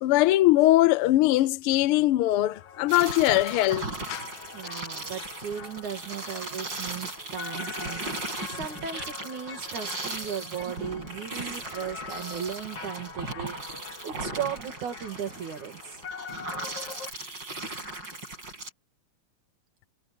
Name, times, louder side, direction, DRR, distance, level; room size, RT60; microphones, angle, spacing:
voice 1, 0.0-4.2, left 16 dB, 85° left, 1.2 m, -21 dB
sound 1, 2.5-17.1, left 6 dB, 55° left, 2.8 m, -43 dB
sound 2, 2.9-18.7, right 2 dB, 35° right, 7.4 m, -37 dB
voice 2, 4.5-16.0, right 8 dB, 80° right, 4.0 m, -36 dB
omnidirectional pair, 3.4 m